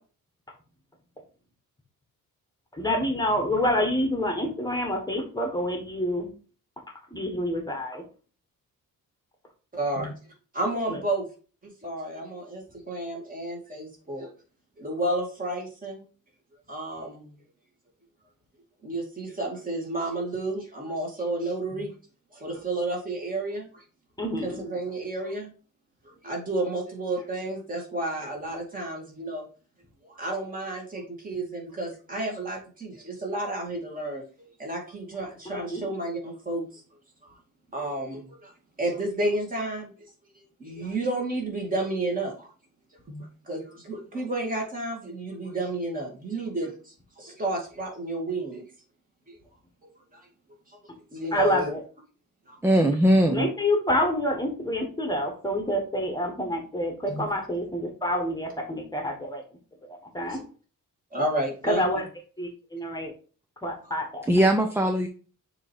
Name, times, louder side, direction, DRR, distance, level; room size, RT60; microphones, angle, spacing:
voice 1, 2.7-6.3 7.1-8.0 24.2-24.6 35.4-35.9 51.3-51.8 53.3-59.4 60.1-60.4 61.6-62.0 62.4-63.1 63.6-64.2, left 1 dB, 10° left, 2 dB, 1.3 m, -27 dB
voice 2, 9.7-10.1 10.5-11.2 11.6-14.3 14.8-16.0 16.7-17.3 18.8-21.9 22.3-23.8 24.4-25.5 26.0-29.5 30.1-36.8 37.2-37.4 37.7-38.5 38.8-39.9 40.6-42.5 43.1-48.6 49.3-49.4 50.1-50.3 50.7-50.8 51.1-51.7 52.5-52.6 57.1-57.2 60.2-60.4 61.1-61.9 63.8-63.9, right 2 dB, 25° right, -1 dB, 2.2 m, -31 dB
voice 3, 52.6-53.5 64.3-65.1, right 1 dB, 10° right, 4 dB, 0.5 m, -20 dB
6.9 x 3.1 x 4.5 m, 0.38 s
cardioid pair, 145°, 33 cm